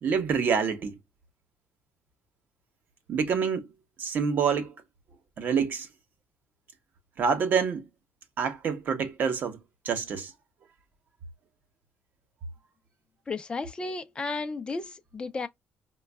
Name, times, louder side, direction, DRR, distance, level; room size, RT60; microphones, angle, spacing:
voice 1, 0.0-0.9 3.1-3.7 4.0-4.7 5.4-5.9 7.2-7.9 8.4-9.6 9.8-10.3, right 6 dB, 50° right, 0.9 m, -27 dB
voice 2, 13.3-15.5, left 3 dB, 25° left, 0.6 m, -33 dB
5.0 x 2.3 x 2.2 m
cardioid pair, 130°, 4 cm